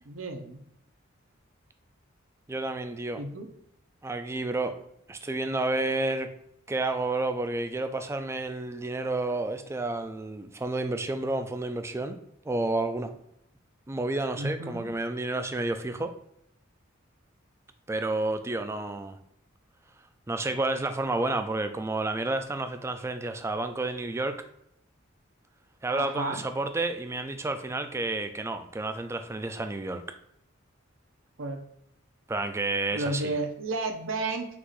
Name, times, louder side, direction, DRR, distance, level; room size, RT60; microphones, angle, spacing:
voice 1, 0.0-0.6 3.2-3.5 14.3-14.9 25.9-26.4 31.4-31.6 32.9-34.5, right 2 dB, 80° right, 3 dB, 0.8 m, -32 dB
voice 2, 2.5-3.2 4.0-4.7 5.1-6.3 6.7-12.2 12.5-13.1 13.9-16.1 17.9-19.2 20.3-24.3 25.8-30.0 32.3-33.3, right 2 dB, 15° right, 8 dB, 0.3 m, -30 dB
4.6 x 2.6 x 4.0 m, 0.74 s
head